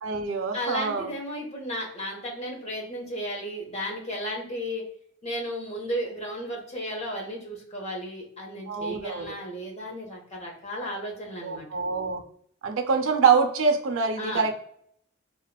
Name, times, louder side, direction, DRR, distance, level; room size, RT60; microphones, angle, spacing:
voice 1, 0.0-1.1 8.7-9.4 11.4-12.2 12.6-14.6, right 5 dB, 90° right, 5 dB, 0.4 m, -25 dB
voice 2, 0.5-4.8 5.2-11.7 14.2-14.6, equal, 35° left, 0 dB, 0.7 m, -34 dB
2.8 x 2.1 x 2.2 m, 0.67 s
head